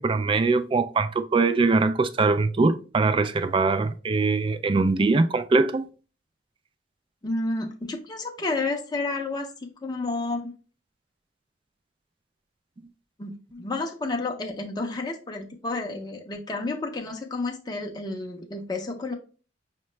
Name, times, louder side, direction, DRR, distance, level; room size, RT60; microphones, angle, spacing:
voice 1, 0.0-5.9, right 3 dB, 30° right, 0.3 m, -22 dB
voice 2, 7.2-10.5 13.2-19.1, left 3 dB, 20° left, 0.5 m, -31 dB
5.7 x 2.2 x 3.1 m
head